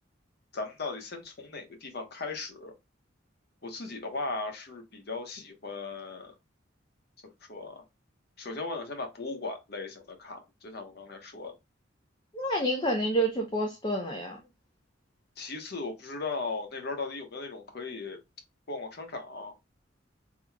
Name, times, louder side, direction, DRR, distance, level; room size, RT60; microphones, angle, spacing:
voice 1, 0.5-2.7 3.6-6.3 7.5-7.8 8.4-11.5 15.4-18.2 18.7-19.5, left 3 dB, 55° left, 1.0 m, -37 dB
voice 2, 12.3-14.4, right 1 dB, 25° left, 0.6 m, -28 dB
3.7 x 3.0 x 2.2 m
head